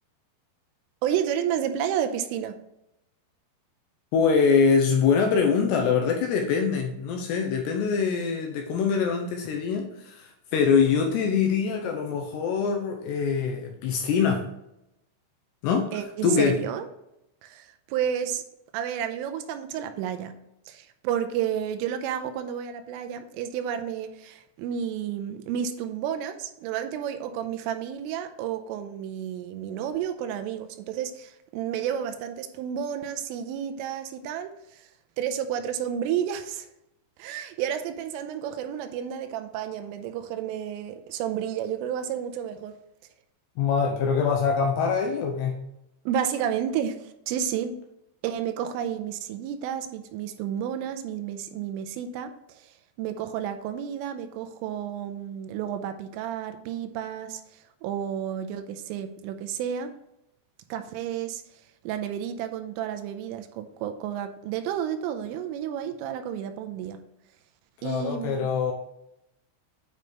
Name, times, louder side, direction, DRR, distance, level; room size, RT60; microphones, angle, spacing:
voice 1, 1.0-2.6 15.9-16.9 17.4-18.4 18.7-20.3 20.7-34.9 35.2-36.7 37.2-42.7 46.1-47.7 48.2-59.9 60.7-61.4 61.8-67.0 67.8-68.5, right 9 dB, 85° right, 8 dB, 3.2 m, -31 dB
voice 2, 4.1-14.4 15.6-15.9 16.2-16.6 43.6-45.6 67.8-68.7, left 6 dB, 85° left, 2 dB, 2.4 m, -24 dB
9.3 x 5.3 x 3.2 m, 0.85 s
omnidirectional pair, 5.8 m